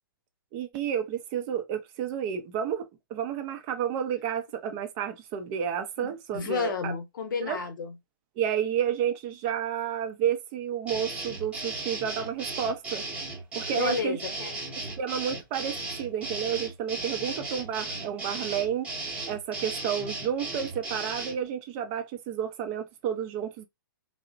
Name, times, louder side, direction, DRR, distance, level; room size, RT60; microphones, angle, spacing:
voice 1, 0.5-6.9 7.4-7.6 8.4-13.0 13.5-14.2 15.0-18.9 19.3-23.7, right 8 dB, 35° right, 0.4 m, -31 dB
voice 2, 6.0-8.0 13.7-14.6, left 6 dB, 60° left, 0.8 m, -32 dB
sound 1, 10.9-21.4, right 2 dB, 10° right, 0.8 m, -36 dB
2.8 x 2.0 x 2.4 m
figure-of-eight pair, 115°, 12 cm